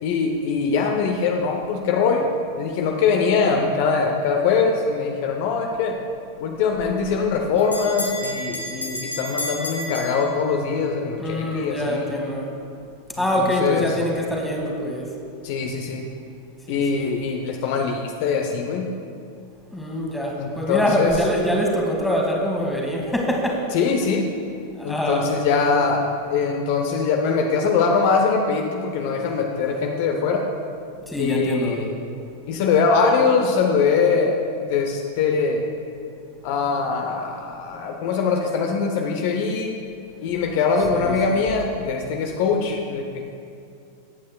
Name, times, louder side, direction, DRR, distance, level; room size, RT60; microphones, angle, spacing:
voice 1, 0.0-2.3 2.6-6.0 6.4-12.2 13.4-13.9 15.4-16.0 16.7-18.9 20.4-21.1 23.7-24.3 24.8-30.4 31.2-31.9 32.5-35.6 36.4-39.7 40.2-43.2, left 5 dB, 50° left, 2 dB, 0.8 m, -22 dB
Bell, 6.8-10.8, left 1 dB, 85° left, 1.6 m, -32 dB
voice 2, 11.2-12.6 13.2-15.2 16.7-17.1 19.7-23.6 24.8-25.3 31.1-31.8 40.9-41.5, equal, 5° left, -1 dB, 1.8 m, -24 dB
19.5 x 8.5 x 2.3 m, 2.5 s
figure-of-eight pair, 90°, 0 cm